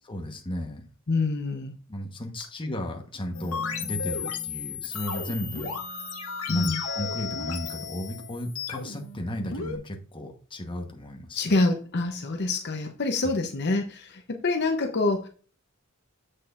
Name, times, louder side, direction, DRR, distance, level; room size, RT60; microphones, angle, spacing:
voice 1, 0.1-0.8 1.9-5.7 6.5-11.6, equal, 25° left, 2 dB, 1.1 m, -35 dB
voice 2, 1.1-1.7 6.5-6.8 11.3-15.3, left 3 dB, 50° left, 4 dB, 0.8 m, -26 dB
sound 1, 3.3-9.8, left 6 dB, 80° left, 1.4 m, -34 dB
7.4 x 6.5 x 2.5 m, 0.40 s
head